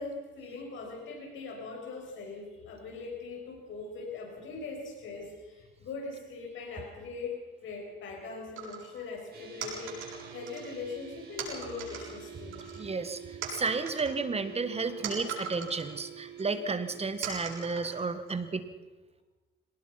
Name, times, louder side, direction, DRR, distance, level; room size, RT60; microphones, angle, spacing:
voice 1, 0.0-13.0 14.8-15.0, left 4 dB, 75° left, 0 dB, 7.5 m, -41 dB
sound 1, 8.6-8.9 9.6-10.8 11.4-12.1 12.5-13.1 13.4-15.9 16.4-16.5 17.2-18.3, right 5 dB, 85° right, 7.2 m, -40 dB
sound 2, 9.3-17.1, right 9 dB, 50° right, 7.2 m, -47 dB
voice 2, 12.8-18.6, right 4 dB, 30° right, 11 dB, 1.6 m, -32 dB
24.5 x 19.0 x 5.8 m, 1.2 s
cardioid pair, 90°, 20 cm